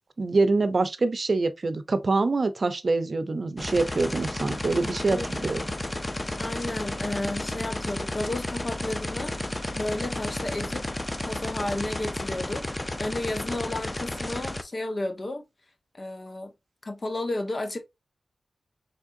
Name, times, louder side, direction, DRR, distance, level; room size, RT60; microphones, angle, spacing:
voice 1, 0.2-5.7, right 3 dB, 55° right, 0.7 m, -25 dB
sound 1, 3.6-14.6, left 1 dB, 20° left, 0.6 m, -32 dB
voice 2, 5.0-5.6 6.4-9.3 9.7-10.9 11.3-15.4 15.9-16.5 16.8-17.8, left 2 dB, 45° left, 1.2 m, -33 dB
4.4 x 3.6 x 2.6 m
cardioid pair, 50°, 0 cm